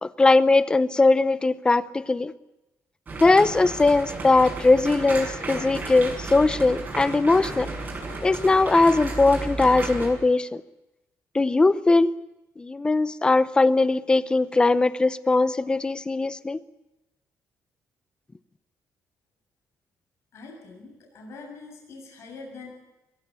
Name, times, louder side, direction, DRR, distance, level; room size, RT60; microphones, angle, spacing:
voice 1, 0.0-2.3 3.2-7.7 8.2-10.6 11.3-12.1 12.6-16.6, left 3 dB, 15° left, 16 dB, 0.7 m, -20 dB
sound 1, 3.1-10.1, right 2 dB, 30° right, 7.1 m, -33 dB
voice 2, 20.3-22.7, left 3 dB, 55° left, 0 dB, 7.3 m, -43 dB
22.5 x 17.0 x 8.4 m, 0.98 s
cardioid pair, 140°, 6 cm